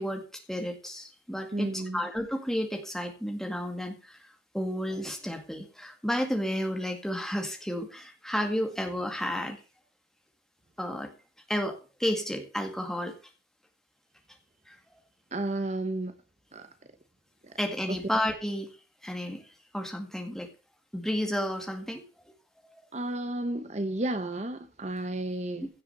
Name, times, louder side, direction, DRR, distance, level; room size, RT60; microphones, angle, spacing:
voice 1, 0.0-4.3 4.5-9.6 10.8-11.1 11.5-13.1 14.7-14.8 17.6-18.7 19.0-19.5 19.7-20.5 20.9-22.0, equal, ahead, 2.0 m, -32 dB
voice 2, 1.5-2.0 15.3-16.1 16.5-16.7 17.4-17.5 22.9-25.7, right 1 dB, 35° right, 1.0 m, -32 dB
16.0 x 6.7 x 6.8 m
head